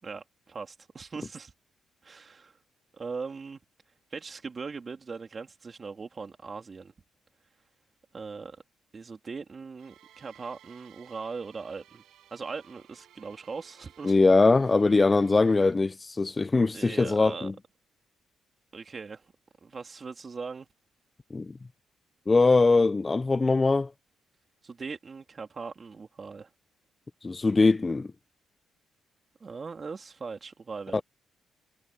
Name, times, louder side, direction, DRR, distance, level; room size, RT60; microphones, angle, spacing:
voice 1, 0.0-1.5 2.0-2.6 2.9-3.6 4.1-6.9 8.1-8.6 8.9-12.0 12.3-14.2 16.7-17.5 18.7-19.3 19.6-20.7 24.6-26.5 29.4-31.0, right 4 dB, 35° right, 3.3 m, -40 dB
sound 1, 9.8-15.7, right 12 dB, 80° right, 5.8 m, -57 dB
voice 2, 14.0-17.5 21.3-21.5 22.3-23.9 27.2-28.1 30.9-31.0, left 3 dB, 25° left, 0.4 m, -22 dB
cardioid pair, 90°, 0 cm